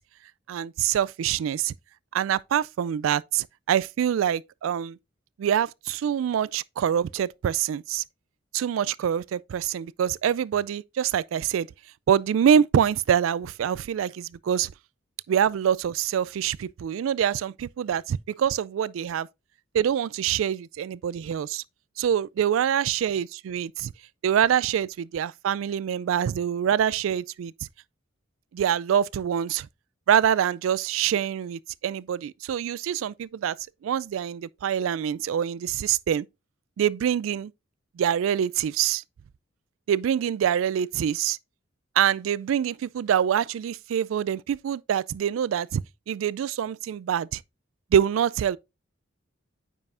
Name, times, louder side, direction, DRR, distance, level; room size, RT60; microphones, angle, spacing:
voice 1, 0.5-1.7 2.1-5.0 5.4-8.0 8.5-11.7 12.1-14.7 15.3-19.3 19.7-21.6 22.0-23.9 24.2-27.5 28.5-29.7 30.1-33.6 33.8-36.3 36.8-37.5 38.0-39.0 39.9-41.4 42.0-47.4 47.9-48.6, right 9 dB, 80° right, 0.3 m, -25 dB
9.1 x 5.4 x 2.5 m
head